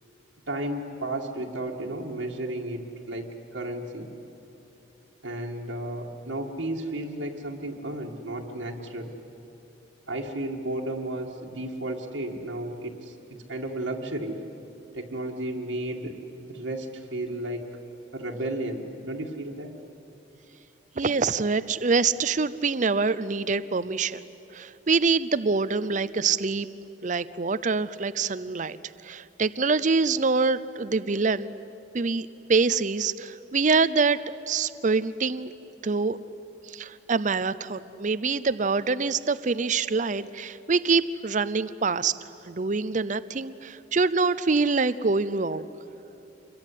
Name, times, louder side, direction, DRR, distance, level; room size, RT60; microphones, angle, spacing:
voice 1, 0.5-3.3 3.5-4.1 5.2-9.1 10.1-13.2 13.5-14.4 14.9-16.2 16.5-17.7 18.1-19.7, right 1 dB, 85° right, -2 dB, 2.0 m, -33 dB
voice 2, 21.0-26.7 27.0-28.8 29.0-31.5 31.9-35.5 35.8-36.2 36.7-42.2 42.5-45.7, right 4 dB, 40° right, 15 dB, 0.6 m, -25 dB
26.5 x 22.0 x 9.9 m, 3.0 s
head